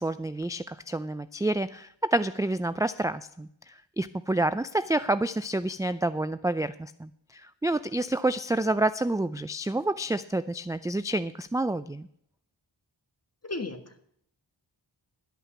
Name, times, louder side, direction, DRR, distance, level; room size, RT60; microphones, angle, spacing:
voice 1, 0.0-12.1, right 2 dB, 10° right, 13 dB, 0.3 m, -28 dB
voice 2, 13.4-14.0, left 2 dB, 35° left, 7 dB, 1.7 m, -35 dB
12.5 x 5.8 x 8.5 m, 0.69 s
wide cardioid pair, 50°, 44 cm